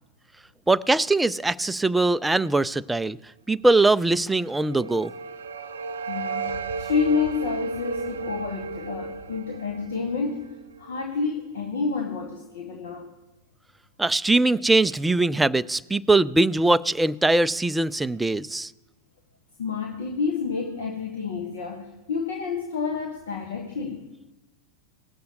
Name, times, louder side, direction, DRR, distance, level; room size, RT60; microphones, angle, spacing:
voice 1, 0.7-3.2 3.5-5.1 14.0-18.7, right 2 dB, 5° right, 0.4 m, -21 dB
sound 1, 4.2-11.3, right 4 dB, 65° right, 0.5 m, -34 dB
voice 2, 6.1-13.1 19.6-24.1, left 5 dB, 60° left, 1.2 m, -29 dB
19.5 x 6.9 x 3.9 m
figure-of-eight pair, 90°, 0 cm